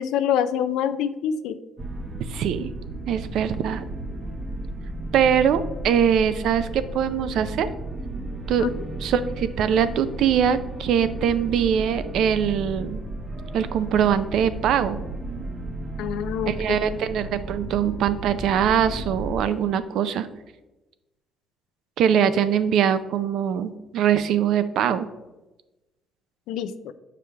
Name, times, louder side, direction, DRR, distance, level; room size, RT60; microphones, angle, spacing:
voice 1, 0.0-1.6 8.6-8.7 16.0-16.8 26.5-26.9, left 9 dB, 90° left, 12 dB, 0.4 m, -26 dB
sound 1, 1.8-19.4, right 2 dB, 25° right, 0.8 m, -34 dB
voice 2, 2.3-2.7 3.1-3.9 5.1-7.7 8.5-8.7 9.0-13.0 13.5-15.0 16.5-20.3 22.0-25.1, right 8 dB, 75° right, 12 dB, 0.5 m, -22 dB
7.1 x 4.8 x 3.3 m, 1.0 s
cardioid pair, 110°, 0 cm